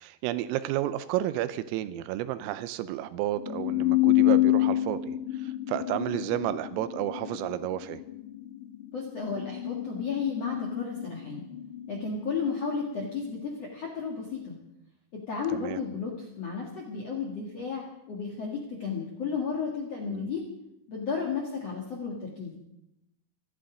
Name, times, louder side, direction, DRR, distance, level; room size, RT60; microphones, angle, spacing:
voice 1, 0.0-8.0 15.5-15.8 20.1-20.3, right 13 dB, 85° right, 13 dB, 3.3 m, -31 dB
sound 1, 3.4-12.3, left 16 dB, 90° left, 4.3 m, -28 dB
voice 2, 8.9-11.4 11.9-14.5 15.3-16.1 16.4-20.4 20.9-22.6, left 5 dB, 60° left, -1 dB, 1.6 m, -33 dB
17.0 x 13.0 x 5.1 m, 0.86 s
omnidirectional pair, 5.9 m